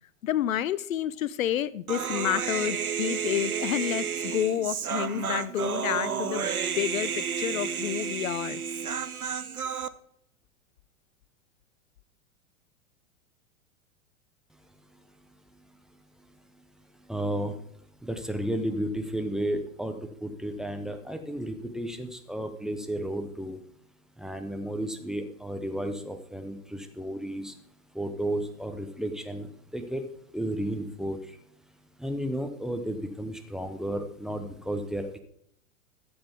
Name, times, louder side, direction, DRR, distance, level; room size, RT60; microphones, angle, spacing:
voice 1, 0.2-6.5 6.8-8.6, left 11 dB, 70° left, 0.5 m, -29 dB
Human voice, 1.9-9.9, right 7 dB, 90° right, 0.7 m, -31 dB
voice 2, 17.1-17.5 18.0-19.9 20.2-23.6 24.2-27.5 27.9-29.5 29.7-30.0 30.3-31.2 32.0-35.0, right 1 dB, ahead, 0.8 m, -32 dB
14.0 x 7.8 x 3.5 m
figure-of-eight pair, 95°, 42 cm